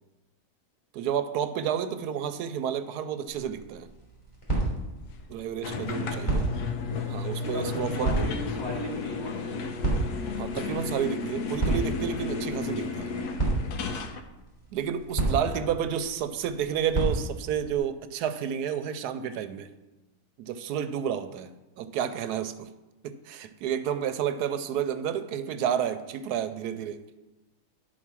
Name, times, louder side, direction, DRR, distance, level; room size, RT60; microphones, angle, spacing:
voice 1, 0.9-3.9 5.3-6.5 7.1-8.2 10.4-13.2 14.7-19.7 20.4-22.7 23.0-27.0, right 8 dB, 80° right, 11 dB, 1.1 m, -30 dB
sound 1, 3.3-17.8, right 2 dB, 20° left, 3.0 m, -33 dB
sound 2, 5.6-14.2, left 4 dB, 80° left, 1.3 m, -33 dB
voice 2, 7.4-9.6 15.2-15.6, left 1 dB, 45° left, -4 dB, 1.8 m, -37 dB
11.0 x 4.6 x 6.1 m, 1.1 s
omnidirectional pair, 1.7 m